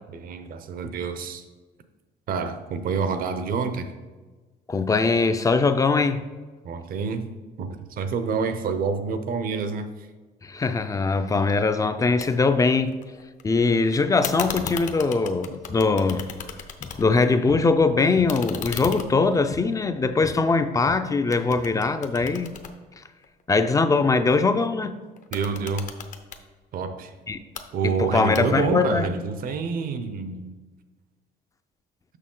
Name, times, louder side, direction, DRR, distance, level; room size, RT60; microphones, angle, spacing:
voice 1, 0.1-1.4 2.3-3.9 6.6-7.3 7.6-9.9 25.3-25.9 26.7-27.1 27.7-30.5, right 5 dB, 55° right, 0.7 m, -27 dB
voice 2, 4.7-6.2 10.4-13.0 13.4-16.3 16.8-22.5 23.5-24.9 27.3-27.4 27.8-29.1, left 4 dB, 20° left, 0.4 m, -21 dB
sound 1, 12.2-12.3 12.6-13.4 14.2-17.3 17.6-20.9 21.3-23.5 25.2-26.4 27.3-27.7 28.3-28.8, left 6 dB, 50° left, 0.7 m, -37 dB
6.5 x 5.9 x 3.8 m
cardioid pair, 110°, 17 cm